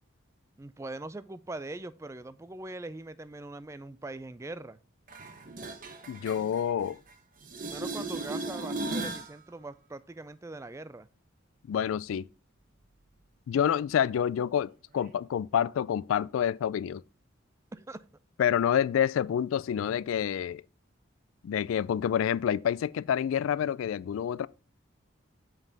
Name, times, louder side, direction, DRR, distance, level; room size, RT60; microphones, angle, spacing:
voice 1, 0.6-4.8 7.7-11.1 17.7-18.0, right 2 dB, 15° right, 0.3 m, -41 dB
sound 1, 5.1-7.1 7.4-9.3 15.1-15.2, right 2 dB, 40° right, 1.0 m, -37 dB
voice 2, 6.1-7.0 11.7-12.3 13.5-17.0 18.4-20.6 21.4-24.5, left 9 dB, 80° left, 0.3 m, -28 dB
7.2 x 5.5 x 3.9 m
head